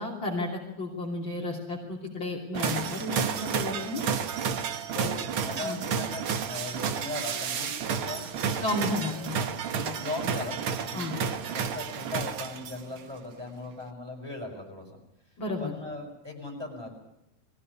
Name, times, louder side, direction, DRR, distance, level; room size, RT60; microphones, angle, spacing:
voice 1, 0.0-4.0 5.6-5.8 8.6-9.3 9.8-10.0 10.9-11.1 15.4-15.7, left 2 dB, 40° left, -1 dB, 3.5 m, -32 dB
sound 1, 2.5-13.0, right 6 dB, 55° right, 1.8 m, -31 dB
voice 2, 4.9-8.3 9.0-9.3 9.9-11.0 11.5-14.9 15.6-16.9, left 2 dB, 5° right, 1 dB, 6.5 m, -38 dB
23.0 x 16.5 x 9.8 m, 0.87 s
omnidirectional pair, 3.4 m